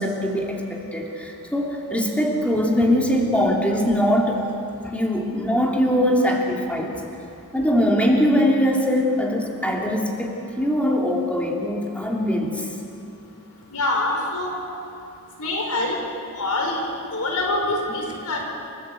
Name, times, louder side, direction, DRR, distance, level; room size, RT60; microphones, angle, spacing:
voice 1, 0.0-4.4 4.9-6.9 7.5-12.6, equal, 5° left, -1 dB, 2.9 m, -22 dB
voice 2, 13.7-14.6 15.4-16.0 16.4-16.9 17.1-18.4, left 2 dB, 80° left, 1 dB, 4.7 m, -25 dB
29.0 x 14.0 x 8.3 m, 2.6 s
head